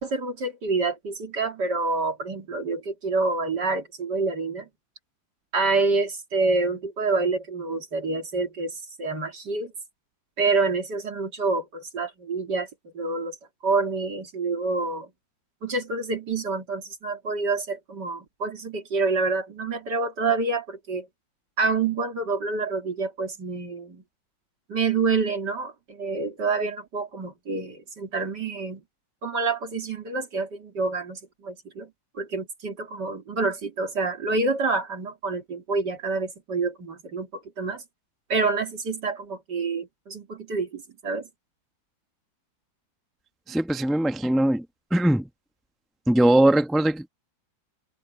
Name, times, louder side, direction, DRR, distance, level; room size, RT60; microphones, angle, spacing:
voice 1, 0.0-4.7 5.5-9.7 10.4-12.7 13.0-13.4 13.6-15.1 15.6-21.1 21.6-24.0 24.7-28.8 29.2-31.9 32.2-37.8 38.3-41.3, right 3 dB, 60° right, 3.4 m, -27 dB
voice 2, 43.5-44.6 44.9-45.2 46.1-47.1, right 1 dB, ahead, 0.3 m, -20 dB
omnidirectional pair, 2.1 m